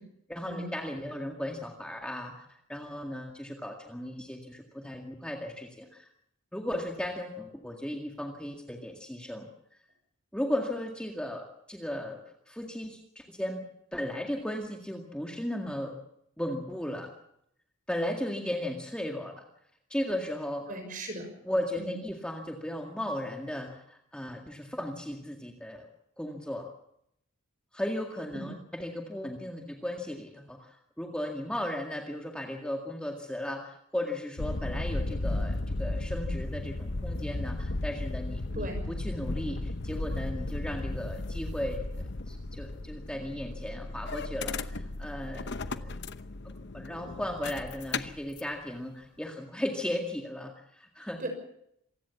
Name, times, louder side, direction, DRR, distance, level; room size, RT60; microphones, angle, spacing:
voice 1, 0.3-6.1 6.5-9.5 10.3-12.2 12.5-13.7 13.9-16.0 16.4-17.1 17.9-19.4 19.9-20.6 21.5-25.9 26.2-26.7 27.7-46.0 46.7-51.2, left 1 dB, 5° left, 2 dB, 2.0 m, -36 dB
voice 2, 20.7-21.3 21.8-22.0 28.3-28.5 38.5-38.8 51.2-51.3, right 1 dB, 35° right, 6 dB, 6.3 m, -37 dB
sound 1, 34.4-48.4, left 2 dB, 50° left, 1.0 m, -35 dB
27.0 x 16.5 x 7.2 m, 0.74 s
head